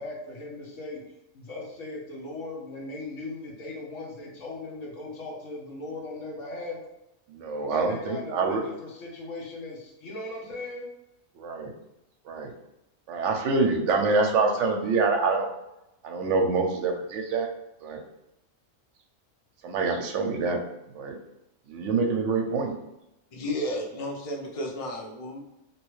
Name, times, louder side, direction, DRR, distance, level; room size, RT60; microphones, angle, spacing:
voice 1, 0.0-6.8 7.7-10.9, left 2 dB, 70° left, -2 dB, 1.2 m, -38 dB
voice 2, 7.3-8.6 11.4-11.7 12.2-12.5 13.1-15.5 16.0-17.5 17.8-18.0 19.6-20.6 20.9-21.2 21.7-22.8, right 4 dB, 70° right, 4 dB, 0.8 m, -26 dB
voice 3, 23.3-25.4, left 1 dB, 50° left, 0 dB, 0.4 m, -32 dB
3.1 x 2.9 x 3.1 m, 0.89 s
omnidirectional pair, 1.4 m